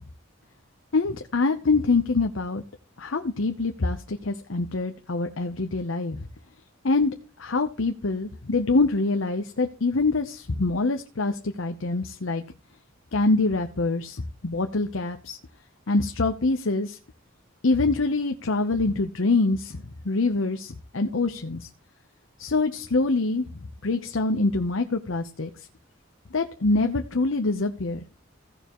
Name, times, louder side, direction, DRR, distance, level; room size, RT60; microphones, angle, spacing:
voice 1, 0.9-2.6 3.0-6.2 6.8-7.1 7.4-12.4 13.1-15.4 15.9-17.0 17.6-21.7 22.4-23.5 23.8-25.5 26.3-28.0, left 3 dB, 75° left, 6 dB, 0.8 m, -25 dB
16.0 x 6.8 x 3.0 m, 0.36 s
head